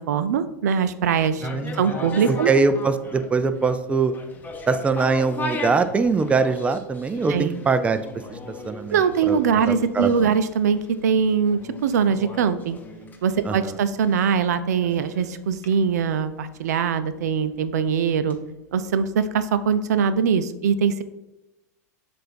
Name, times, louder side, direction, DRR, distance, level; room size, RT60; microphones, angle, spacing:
voice 1, 0.1-1.5 1.8-2.5 7.3-7.6 8.9-12.8 13.2-18.4 18.7-21.0, right 6 dB, 75° right, 12 dB, 0.5 m, -22 dB
sound 1, 1.3-19.5 19.8-19.9, left 3 dB, 20° left, 0.9 m, -38 dB
voice 2, 1.4-4.1 4.7-8.0 8.3-9.0 9.3-9.4 9.7-10.4 13.4-13.8, right 4 dB, 15° right, 10 dB, 0.4 m, -23 dB
7.6 x 2.6 x 5.1 m, 0.96 s
hypercardioid pair, 95°, 9 cm